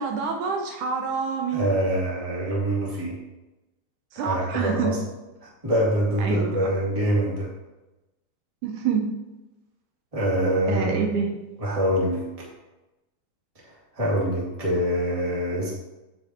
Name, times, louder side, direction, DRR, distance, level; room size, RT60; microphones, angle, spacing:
voice 1, 0.0-1.7 4.1-4.9 6.2-6.6 8.6-9.1 10.7-11.3, right 6 dB, 80° right, 2 dB, 2.3 m, -26 dB
voice 2, 1.5-3.1 4.1-5.0 5.6-7.5 10.1-11.0 11.6-12.5 13.9-15.7, equal, 15° right, -5 dB, 1.8 m, -24 dB
8.6 x 7.4 x 2.9 m, 1.0 s
omnidirectional pair, 3.7 m